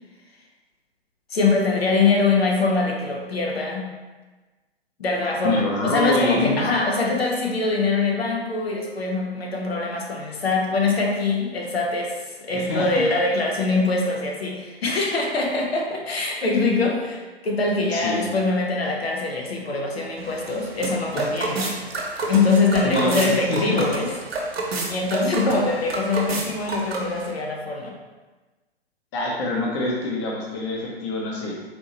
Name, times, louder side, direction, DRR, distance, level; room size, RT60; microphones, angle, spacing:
voice 1, 1.3-4.0 5.0-21.7 22.3-24.1 24.9-27.9, left 3 dB, 75° left, 0 dB, 0.7 m, -23 dB
voice 2, 5.4-6.6 12.5-13.0 17.9-18.3 21.1-21.2 22.2-22.4 22.8-23.8 29.1-31.7, left 2 dB, 30° left, -2 dB, 0.7 m, -25 dB
sound 1, 20.2-27.3, right 2 dB, 70° right, 0.9 m, -29 dB
4.3 x 2.7 x 2.8 m, 1.2 s
figure-of-eight pair, 120°, 31 cm